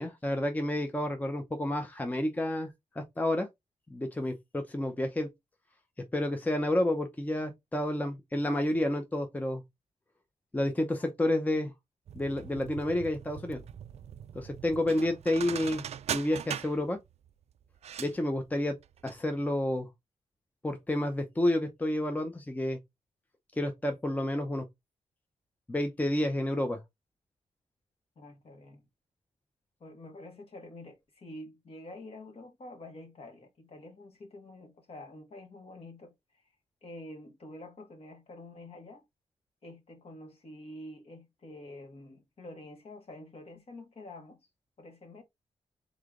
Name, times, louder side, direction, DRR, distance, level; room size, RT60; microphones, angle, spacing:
voice 1, 0.0-3.5 3.9-5.3 6.0-9.6 10.5-11.7 12.1-13.6 14.3-17.0 18.0-18.8 19.0-19.9 20.6-22.8 23.5-24.7 25.7-26.8, left 1 dB, 15° left, 0.6 m, -30 dB
sound 1, 12.1-19.2 19.5-19.6, right 9 dB, 60° right, 0.4 m, -41 dB
voice 2, 28.1-28.9 29.8-36.4 36.8-39.0 39.6-44.4 44.8-45.2, left 1 dB, 50° left, 1.6 m, -47 dB
3.8 x 3.2 x 3.7 m
cardioid pair, 110°, 12 cm